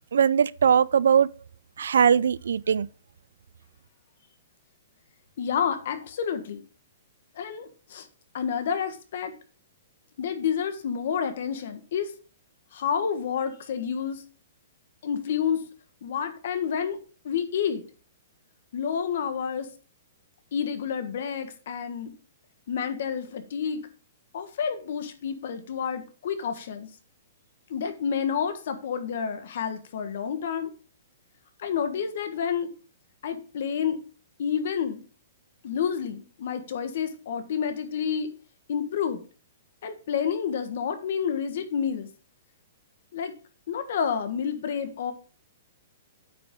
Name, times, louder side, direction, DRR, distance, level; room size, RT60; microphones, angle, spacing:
voice 1, 0.1-1.3 1.8-2.9, right 7 dB, 90° right, 0.4 m, -20 dB
voice 2, 5.4-6.6 7.3-8.1 8.3-9.3 10.2-12.1 12.7-14.2 15.0-15.7 16.0-17.0 17.2-17.8 18.7-19.7 20.5-22.1 22.7-23.8 24.3-26.9 27.7-30.7 31.6-32.7 33.2-34.0 34.4-35.0 35.6-38.3 38.7-39.2 39.8-42.1 43.1-43.3 43.7-45.1, left 7 dB, 50° left, 1.5 m, -29 dB
9.0 x 6.0 x 3.8 m
hypercardioid pair, 175°, 0 cm